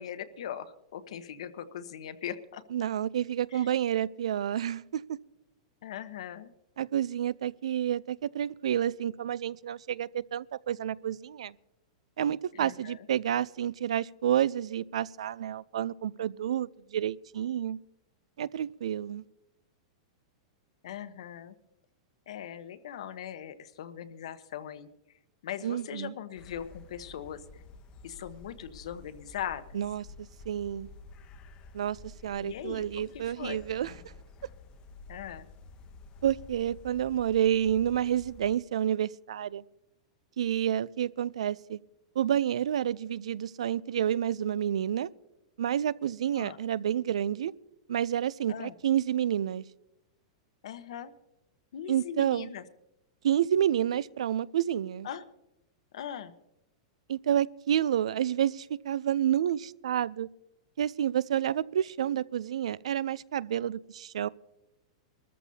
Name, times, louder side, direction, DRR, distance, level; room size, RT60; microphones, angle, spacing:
voice 1, 0.0-2.6 3.5-3.7 5.8-6.5 12.5-13.1 20.8-21.6 22.3-24.9 25.4-27.6 28.0-29.8 32.4-33.6 35.1-35.5 46.3-46.6 48.5-48.7 50.6-51.1 51.7-52.6 55.0-55.2 55.9-56.3, left 9 dB, 75° left, 1.0 m, -40 dB
voice 2, 2.7-5.2 6.8-11.5 12.2-17.8 18.4-19.2 25.6-26.1 29.7-30.9 31.7-33.9 36.2-39.6 40.4-41.8 42.2-45.1 45.6-47.5 47.9-49.6 51.9-52.5 53.2-55.1 57.1-60.3 60.8-64.3, right 10 dB, 90° right, 0.4 m, -29 dB
sound 1, 26.3-38.5, left 3 dB, 30° left, 0.8 m, -51 dB
23.0 x 14.0 x 2.8 m
supercardioid pair, 150°, 3 cm